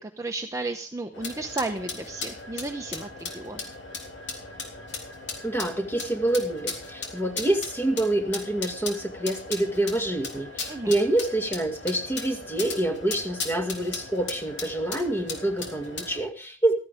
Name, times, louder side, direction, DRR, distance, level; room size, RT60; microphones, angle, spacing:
voice 1, 0.0-3.6 10.7-11.0, right 2 dB, 15° right, 4 dB, 0.9 m, -33 dB
sound 1, 1.1-16.2, left 4 dB, 70° left, 3.5 m, -37 dB
voice 2, 5.4-16.7, right 1 dB, 10° left, 3 dB, 2.3 m, -27 dB
15.0 x 14.0 x 3.7 m, 0.38 s
head